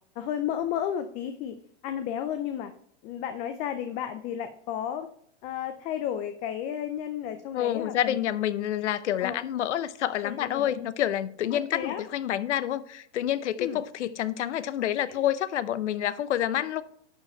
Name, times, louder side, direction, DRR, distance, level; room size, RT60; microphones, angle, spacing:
voice 1, 0.2-1.6 1.8-2.7 3.0-5.1 5.4-8.2 9.2-9.4 10.1-10.8 11.5-12.0 13.6-13.8 15.1-15.2, left 10 dB, 20° left, 0.4 m, -33 dB
voice 2, 7.5-16.8, left 11 dB, 90° left, 0.8 m, -28 dB
11.0 x 4.8 x 4.3 m
supercardioid pair, 145°, 34 cm